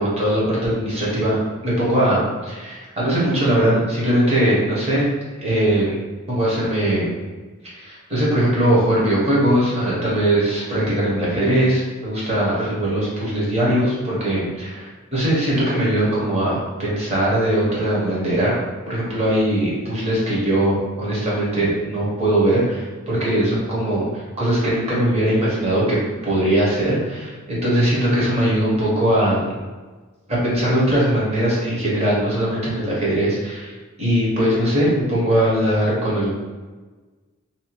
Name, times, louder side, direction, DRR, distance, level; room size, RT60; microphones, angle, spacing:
voice 1, 0.0-1.4 1.6-5.1 5.4-6.0 6.3-7.2 7.7-18.6 18.9-26.0 26.2-29.5 30.3-36.3, right 1 dB, 30° right, -6 dB, 0.8 m, -20 dB
2.7 x 2.2 x 2.9 m, 1.3 s
head